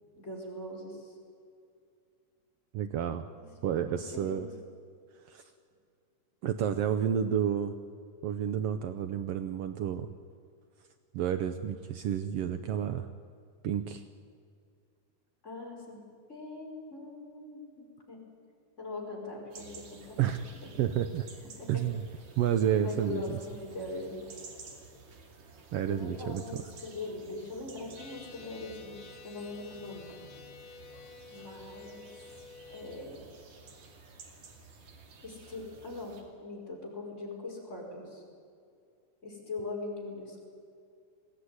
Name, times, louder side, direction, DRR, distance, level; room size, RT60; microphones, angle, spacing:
voice 1, 0.2-1.1 3.4-3.5 4.1-4.5 15.4-16.0 16.3-18.2 18.8-20.2 21.6-21.8 22.8-24.4 25.9-30.1 31.3-32.1 32.7-33.3 35.2-38.2 39.2-40.4, left 2 dB, 20° left, -2 dB, 5.3 m, -41 dB
voice 2, 2.7-3.3 3.6-4.5 5.2-5.4 6.4-7.7 8.2-10.1 11.1-13.1 13.6-14.0 20.2-20.5 20.8-21.3 21.7-22.0 22.4-23.4 25.7-26.4, right 9 dB, 85° right, 10 dB, 1.3 m, -30 dB
sound 1, 19.5-36.2, right 3 dB, 60° right, 3.6 m, -53 dB
sound 2, 28.0-33.1, left 4 dB, 85° left, 3.4 m, -51 dB
21.0 x 16.0 x 9.6 m, 2.3 s
omnidirectional pair, 3.7 m